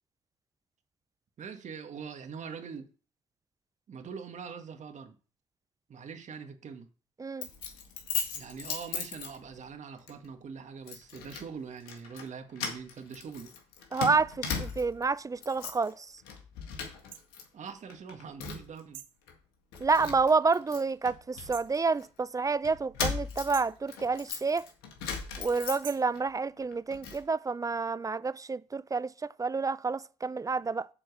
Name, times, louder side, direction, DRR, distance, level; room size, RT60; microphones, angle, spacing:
voice 1, 1.4-2.9 3.9-5.1 5.9-6.9 8.3-13.5 17.5-19.0, right 6 dB, 55° right, 1.7 m, -43 dB
Keys jangling, 7.4-9.7 10.1-10.3 10.9-11.5 11.8-12.3 12.6-15.0 15.4-15.9 16.2-17.4 17.7-18.8 19.3-19.4 19.7-22.1 22.6-26.2 26.6-27.2, left 6 dB, 80° left, 1.8 m, -38 dB
voice 2, 13.9-16.1 19.8-24.7 25.4-30.9, right 4 dB, 20° right, 0.5 m, -29 dB
sound 1, 17.1-17.3 18.9-19.2 21.5-21.8 23.5-23.8 25.8-26.1, right 12 dB, 70° right, 0.8 m, -45 dB
7.6 x 4.5 x 6.7 m
hypercardioid pair, 55°, 15 cm